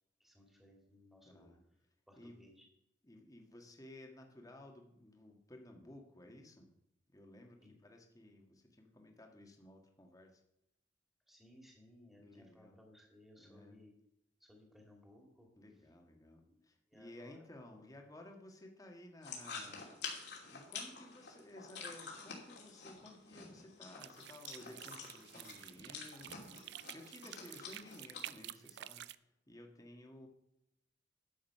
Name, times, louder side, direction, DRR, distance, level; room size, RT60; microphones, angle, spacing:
voice 1, 0.2-1.5 2.1-2.7 7.6-7.8 11.3-14.0 14.4-15.5 16.4-16.6 16.9-17.5, left 1 dB, ahead, 1 dB, 2.4 m, -62 dB
voice 2, 1.2-1.6 2.1-2.4 3.0-6.7 7.1-10.4 12.2-12.8 13.4-13.8 15.6-20.1 20.5-26.6 26.9-30.3, left 1 dB, 20° left, 2 dB, 1.6 m, -56 dB
sound 1, 19.2-28.2, left 5 dB, 65° left, 2.7 m, -48 dB
sound 2, 24.0-29.1, right 13 dB, 65° right, 0.4 m, -50 dB
12.0 x 7.5 x 5.5 m, 0.81 s
head